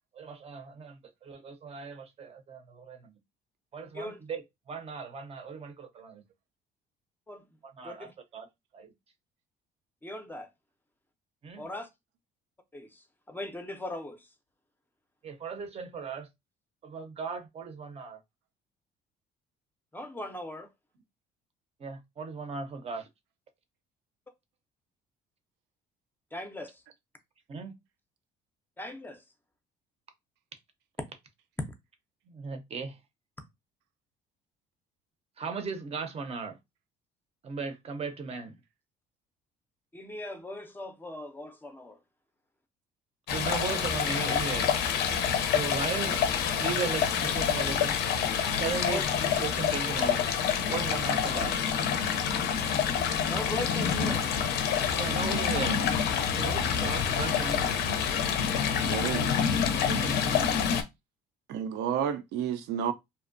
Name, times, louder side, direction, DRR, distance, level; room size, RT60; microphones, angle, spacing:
voice 1, 0.1-3.1 3.7-4.4 4.7-6.2 7.8-8.5 8.7-8.9 11.4-11.6 15.2-16.3 16.8-18.2 21.8-23.1 27.5-27.7 32.3-33.0 35.4-36.6 37.4-38.6 43.3-44.7 45.5-46.2 46.6-48.0 48.5-49.0 49.4-50.3 50.7-51.6 54.9-55.8 56.3-57.9 59.9-60.4, right 5 dB, 35° right, 0.5 m, -37 dB
voice 2, 10.0-10.5 11.6-11.9 12.7-14.3 19.9-20.7 26.3-26.8 28.8-29.2 39.9-42.0 48.9-49.1 53.2-54.3, left 1 dB, 10° left, 0.4 m, -39 dB
Stream, 43.3-60.8, left 7 dB, 75° left, 0.5 m, -27 dB
voice 3, 58.8-59.4 61.5-62.9, right 8 dB, 85° right, 0.4 m, -31 dB
2.5 x 2.1 x 2.5 m
cardioid pair, 110°, 17 cm